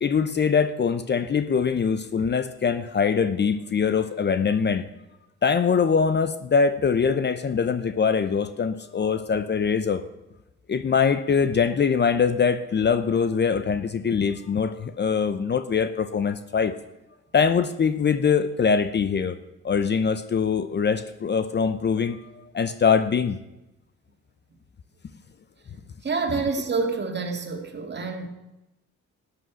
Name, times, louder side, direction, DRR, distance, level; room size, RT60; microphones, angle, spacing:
voice 1, 0.0-4.8 5.4-10.0 10.7-16.7 17.3-19.4 19.6-23.4, left 6 dB, 35° left, 12 dB, 0.7 m, -23 dB
voice 2, 26.0-28.3, right 4 dB, 35° right, 4 dB, 2.4 m, -27 dB
12.0 x 9.7 x 6.2 m, 0.96 s
cardioid pair, 90°, 30 cm